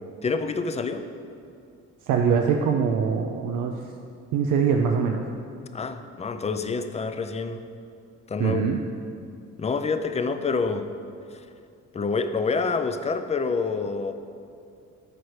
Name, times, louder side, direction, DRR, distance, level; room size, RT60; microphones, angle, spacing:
voice 1, 0.2-1.0 5.7-7.7 8.3-8.6 9.6-10.9 11.3-11.4 11.9-14.1, left 4 dB, 20° left, 9 dB, 0.4 m, -27 dB
voice 2, 2.1-3.8 4.3-5.2 8.4-8.8, right 6 dB, 85° right, 2 dB, 0.5 m, -23 dB
12.5 x 4.7 x 3.2 m, 2.5 s
cardioid pair, 90°, 30 cm